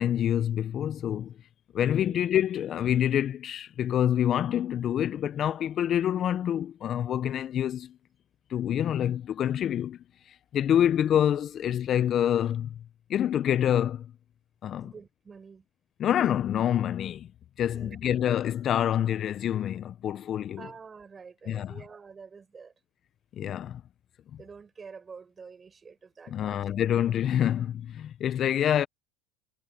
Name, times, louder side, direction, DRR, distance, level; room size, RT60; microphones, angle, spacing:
voice 1, 0.0-1.3 1.7-7.9 8.5-10.0 10.3-12.8 13.1-14.1 14.6-14.9 16.0-17.3 17.6-20.6 21.5-21.7 23.4-23.8 26.3-28.9, left 10 dB, 40° left, 0.8 m, -26 dB
voice 2, 14.8-15.7 17.7-18.2 20.6-22.7 24.4-26.6 28.0-28.1, right 5 dB, 25° right, 7.0 m, -48 dB
hypercardioid pair, 95°, 0 cm